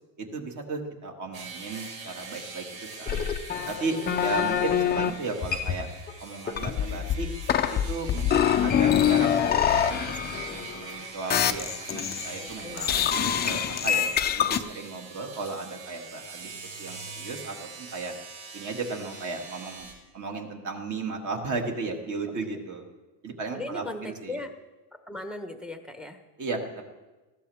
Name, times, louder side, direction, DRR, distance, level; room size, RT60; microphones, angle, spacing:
voice 1, 0.2-2.7 3.0-3.3 3.7-5.9 6.2-7.3 7.7-13.0 13.4-18.1 18.5-19.9 20.1-22.8 23.2-24.4 26.4-26.8, right 3 dB, 35° right, 2 dB, 2.2 m, -35 dB
sound 1, 1.3-19.9, right 4 dB, 60° right, 5.2 m, -42 dB
sound 2, 3.1-5.1 5.4-6.1 6.5-10.9 11.3-12.4 12.8-14.6, left 9 dB, 20° left, 0.5 m, -25 dB
voice 2, 12.3-12.9 22.3-22.4 23.5-24.5 25.1-26.2, left 2 dB, ahead, 5 dB, 1.0 m, -38 dB
20.0 x 15.5 x 3.5 m, 1.2 s
cardioid pair, 150°, 49 cm